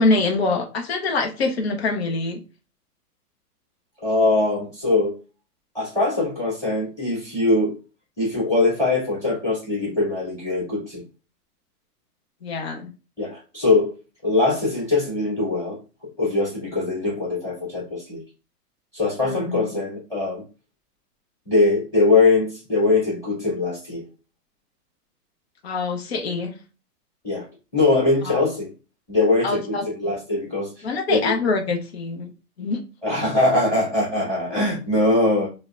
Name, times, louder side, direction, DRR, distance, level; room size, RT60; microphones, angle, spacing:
voice 1, 0.0-2.4 12.4-12.9 19.2-19.8 25.6-26.5 28.2-28.3 29.4-30.1 30.8-32.3 32.6-32.8, left 3 dB, 40° left, 4 dB, 0.6 m, -24 dB
voice 2, 4.0-5.2 5.7-7.7 8.2-11.0 13.2-13.9 14.2-15.8 16.2-18.2 18.9-20.4 21.5-24.1 27.2-27.4 27.7-28.7 29.1-31.4 33.0-35.5, left 2 dB, 5° left, -6 dB, 1.9 m, -22 dB
5.0 x 2.1 x 2.3 m, 0.32 s
hypercardioid pair, 170°, 48 cm